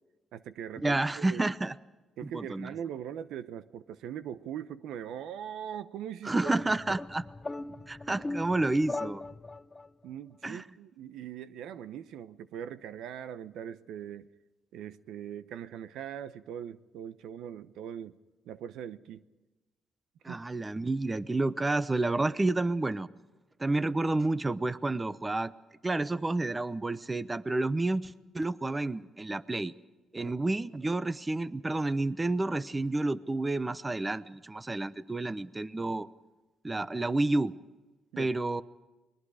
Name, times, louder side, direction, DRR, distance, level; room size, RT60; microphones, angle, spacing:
voice 1, 0.3-1.5 2.2-6.5 6.9-7.0 8.1-8.2 10.0-14.3 14.7-18.2 18.5-19.2 20.3-20.4 30.1-30.3 38.1-38.3, right 9 dB, 85° right, 14 dB, 0.8 m, -41 dB
voice 2, 0.8-1.7 2.2-2.8 6.2-7.2 7.9-9.2 10.4-10.6 20.2-23.1 23.6-25.5 25.8-29.7 30.1-36.1 36.6-37.5 38.2-38.6, right 2 dB, 20° right, 15 dB, 0.8 m, -30 dB
sound 1, 6.4-9.9, left 2 dB, 20° left, 0.7 m, -39 dB
29.5 x 21.5 x 4.9 m, 1.2 s
cardioid pair, 90°, 0 cm